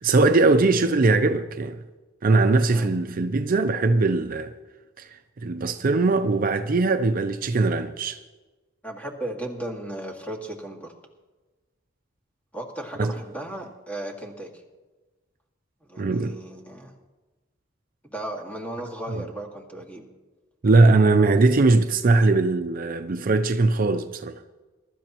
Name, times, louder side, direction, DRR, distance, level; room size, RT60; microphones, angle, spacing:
voice 1, 0.0-1.8 2.2-4.5 5.0-5.1 5.4-8.2 13.0-13.1 16.0-16.4 19.1-19.2 20.6-24.3, right 3 dB, 45° right, 0.5 m, -20 dB
voice 2, 8.8-10.9 12.5-14.5 15.9-16.9 18.0-20.1, right 1 dB, 10° left, 1.9 m, -35 dB
22.0 x 12.5 x 3.0 m
head